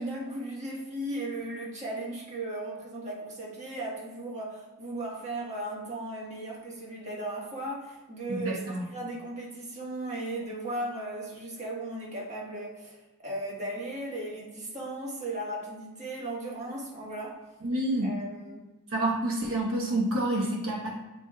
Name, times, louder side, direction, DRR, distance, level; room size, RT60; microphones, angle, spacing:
voice 1, 0.0-17.4 18.0-18.6, right 1 dB, 30° right, -4 dB, 1.4 m, -36 dB
voice 2, 8.3-8.9 17.6-18.2 18.9-20.9, right 1 dB, 65° right, -3 dB, 1.0 m, -28 dB
8.9 x 4.6 x 2.3 m, 1.1 s
head